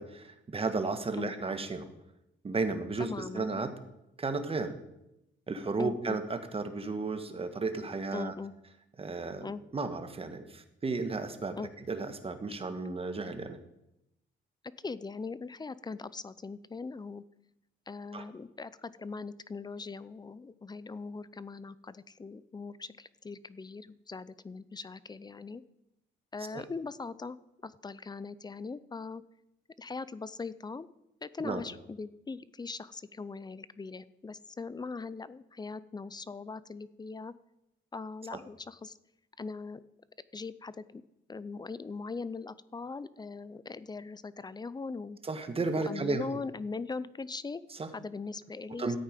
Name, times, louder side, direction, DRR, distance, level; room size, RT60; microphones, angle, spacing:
voice 1, 0.0-1.9 2.4-3.7 4.2-4.8 5.5-8.3 9.0-11.6 11.9-13.6 18.1-18.2 26.5-26.6 31.4-31.6 38.3-38.4 45.2-46.2 47.7-47.9 48.8-49.0, right 3 dB, 30° right, 8 dB, 1.4 m, -33 dB
voice 2, 3.0-3.5 5.8-6.2 8.1-8.5 9.4-9.6 11.6-11.7 14.8-17.2 17.9-25.6 26.3-27.4 27.6-29.2 29.8-30.9 31.2-37.3 37.9-39.0 39.4-39.8 40.3-41.0 41.3-45.2 45.7-47.6 47.9-49.0, left 4 dB, 20° left, 17 dB, 0.5 m, -40 dB
13.5 x 8.7 x 5.2 m, 0.87 s
cardioid pair, 90°, 20 cm